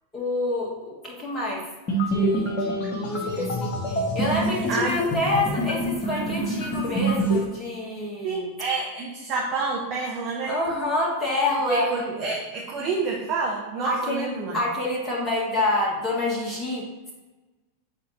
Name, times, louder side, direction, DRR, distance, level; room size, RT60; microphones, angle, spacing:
voice 1, 0.1-1.7 2.1-8.5 10.5-11.9 13.8-14.3 14.5-16.9, left 2 dB, 15° left, -4 dB, 1.7 m, -27 dB
sound 1, 1.9-7.4, right 1 dB, 45° left, 1.2 m, -26 dB
voice 2, 8.2-10.6 11.7-14.6, right 4 dB, 35° right, -2 dB, 0.9 m, -28 dB
8.4 x 4.1 x 2.9 m, 1.2 s
figure-of-eight pair, 90°, 0 cm